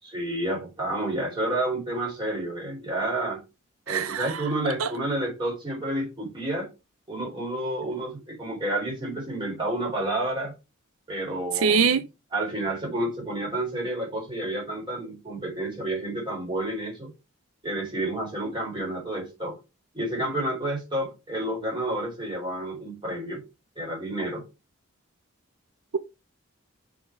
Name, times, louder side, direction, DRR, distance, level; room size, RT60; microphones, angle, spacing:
voice 1, 0.0-3.4 3.9-6.7 7.1-10.5 11.1-11.9 12.3-17.1 17.6-19.6 19.9-23.4 23.8-24.4, right 1 dB, 20° right, 3.8 m, -30 dB
voice 2, 3.9-4.4 4.8-4.9 11.6-12.1, right 6 dB, 85° right, 0.5 m, -23 dB
6.0 x 4.0 x 4.6 m
head